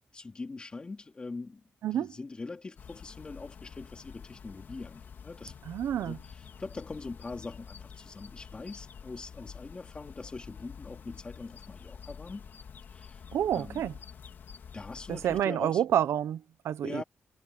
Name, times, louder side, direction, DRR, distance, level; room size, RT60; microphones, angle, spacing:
voice 1, 0.1-1.6 1.9-5.5 6.0-12.5 12.9-13.2 13.5-13.8 14.7-15.8 16.8-17.0, left 3 dB, 20° left, 3.1 m, -42 dB
sound 1, 2.8-15.4, left 7 dB, 45° left, 2.7 m, -48 dB
voice 2, 5.7-6.2 13.3-13.9 15.1-17.0, right 10 dB, 85° right, 0.9 m, -29 dB
wide cardioid pair, 175°, 5 cm